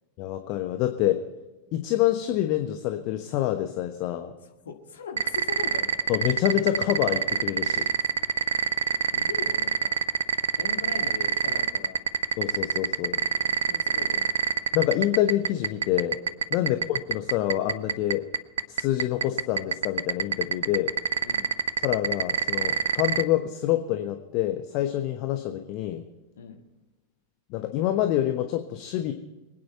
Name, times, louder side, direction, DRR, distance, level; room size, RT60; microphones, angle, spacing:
voice 1, 0.2-1.2 1.7-4.3 6.1-7.9 12.4-13.2 14.7-16.2 16.5-18.2 18.7-20.9 21.8-26.0 27.5-29.1, left 13 dB, 45° left, 6 dB, 1.1 m, -26 dB
voice 2, 4.4-6.0 8.2-8.3 9.1-10.0 10.6-12.0 13.4-14.3 16.5-16.8 21.2-21.5 26.4-26.6, left 6 dB, 65° left, 4 dB, 2.0 m, -40 dB
sound 1, 5.2-23.2, right 7 dB, 70° right, 0.6 m, -24 dB
24.5 x 9.3 x 4.5 m, 1.1 s
figure-of-eight pair, 90°, 0 cm